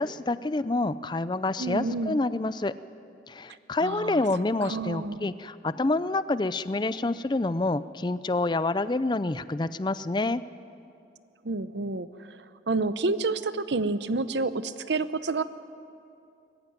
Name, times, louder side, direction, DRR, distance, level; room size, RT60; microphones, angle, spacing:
voice 1, 0.0-2.7 3.3-10.4, left 2 dB, 25° left, 15 dB, 0.4 m, -27 dB
voice 2, 1.6-2.2 3.8-4.2 4.6-5.3 11.4-12.4 12.7-15.4, right 3 dB, 75° right, 13 dB, 0.8 m, -29 dB
21.0 x 15.0 x 9.0 m, 2.6 s
head